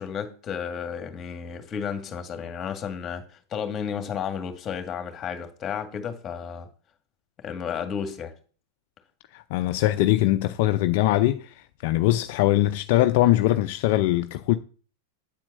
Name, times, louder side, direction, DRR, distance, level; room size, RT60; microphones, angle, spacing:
voice 1, 0.0-3.2 3.5-6.7 7.4-8.3, left 7 dB, 25° left, 2.0 m, -32 dB
voice 2, 9.3-14.6, left 15 dB, 55° left, 0.6 m, -22 dB
9.1 x 4.4 x 7.5 m
hypercardioid pair, 120°, 0 cm